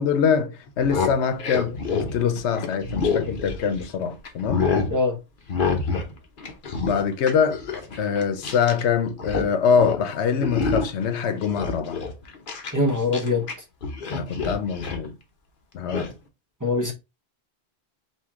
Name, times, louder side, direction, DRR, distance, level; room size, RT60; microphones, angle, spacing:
voice 1, 0.0-4.7 6.8-7.6 8.0-12.0 14.1-15.2 15.7-16.1, left 6 dB, 90° left, 0.9 m, -24 dB
sound 1, 0.7-3.9 4.2-4.9 5.5-6.1 6.4-8.8 9.1-9.5 9.8-10.0 10.4-11.0 11.4-13.5 13.8-15.1 15.9-16.1, left 4 dB, 55° left, 1.0 m, -27 dB
voice 2, 12.7-13.4 16.6-16.9, left 2 dB, 20° right, 1.0 m, -22 dB
4.5 x 2.7 x 3.5 m
omnidirectional pair, 1.1 m